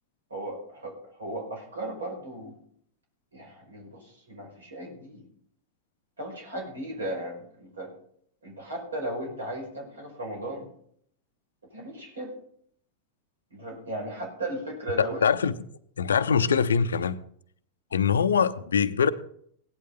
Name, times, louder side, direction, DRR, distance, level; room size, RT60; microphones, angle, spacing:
voice 1, 0.3-2.6 3.3-5.3 6.2-7.9 8.4-10.7 11.7-12.3 13.5-15.3 17.9-18.1, right 1 dB, 70° right, 0 dB, 5.3 m, -36 dB
voice 2, 15.0-15.5 16.0-17.2 17.9-19.1, left 6 dB, 70° left, 14 dB, 0.7 m, -23 dB
17.5 x 11.0 x 3.8 m, 0.64 s
figure-of-eight pair, 90°, 0 cm